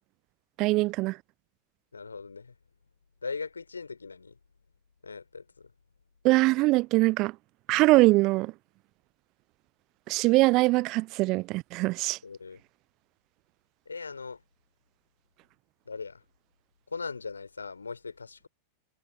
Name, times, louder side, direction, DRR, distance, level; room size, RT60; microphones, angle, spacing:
voice 1, 0.6-1.2 6.2-7.4 7.7-8.5 10.1-12.2, right 21 dB, 40° right, 0.5 m, -23 dB
voice 2, 1.9-2.5 3.2-4.4 5.0-5.7 12.2-12.6 13.9-14.4 15.9-16.2 16.9-18.5, left 4 dB, 75° left, 3.5 m, -39 dB
figure-of-eight pair, 90°, 0 cm